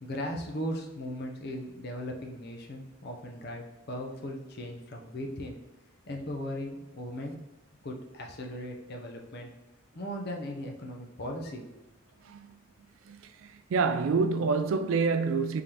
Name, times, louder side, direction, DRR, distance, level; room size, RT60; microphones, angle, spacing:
voice 1, 0.0-5.6 6.1-7.4 7.8-9.5 9.9-11.8, equal, 50° left, 0.7 m, -38 dB
voice 2, 12.2-12.6 13.0-15.6, right 4 dB, 70° right, 0.3 m, -28 dB
3.8 x 3.4 x 2.9 m
head